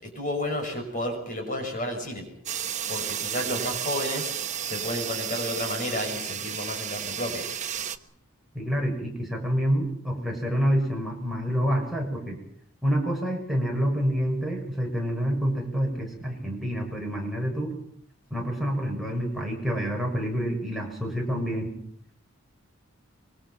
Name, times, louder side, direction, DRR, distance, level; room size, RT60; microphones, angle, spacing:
voice 1, 0.0-2.2 2.9-4.3 4.6-7.4, left 1 dB, 40° left, 4 dB, 6.5 m, -31 dB
sound 1, 2.5-8.0, right 9 dB, 35° right, 1.2 m, -32 dB
voice 2, 8.5-12.4 12.8-17.8 18.3-21.7, equal, ahead, -2 dB, 6.8 m, -27 dB
25.5 x 24.5 x 5.9 m, 0.68 s
head